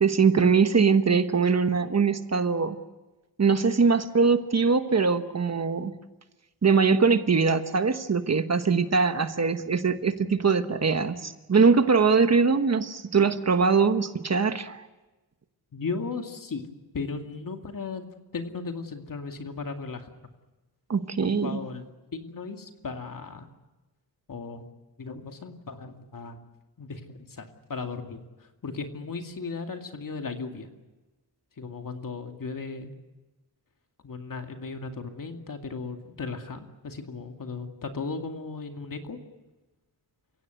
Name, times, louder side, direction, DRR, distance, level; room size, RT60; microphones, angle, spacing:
voice 1, 0.0-2.8 3.4-5.9 6.6-14.9 20.9-21.6, right 5 dB, 40° right, 9 dB, 1.2 m, -22 dB
voice 2, 15.7-16.6 16.9-18.1 18.3-20.1 21.3-21.8 22.1-23.5 24.3-24.7 25.0-26.4 26.8-30.7 31.6-32.9 34.0-39.2, left 4 dB, 55° left, 5 dB, 2.4 m, -36 dB
29.5 x 16.5 x 8.2 m, 1.1 s
wide cardioid pair, 130°, 39 cm